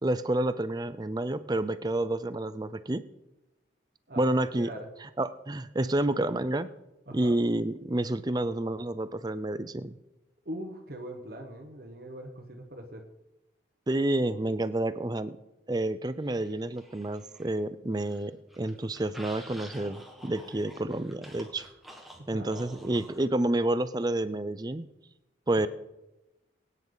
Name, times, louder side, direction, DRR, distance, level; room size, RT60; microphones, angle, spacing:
voice 1, 0.0-3.0 4.2-4.7 5.2-6.7 7.1-10.0 13.9-15.4 15.7-21.7 22.3-24.9 25.5-25.7, right 1 dB, 20° right, 14 dB, 0.5 m, -29 dB
voice 2, 4.1-4.9 7.1-7.4 10.4-13.1 22.2-23.0 25.5-25.7, equal, 55° right, 3 dB, 1.4 m, -42 dB
sound 1, 16.2-17.6 17.9-23.3, equal, ahead, 1.6 m, -49 dB
22.0 x 9.5 x 4.0 m, 0.97 s
head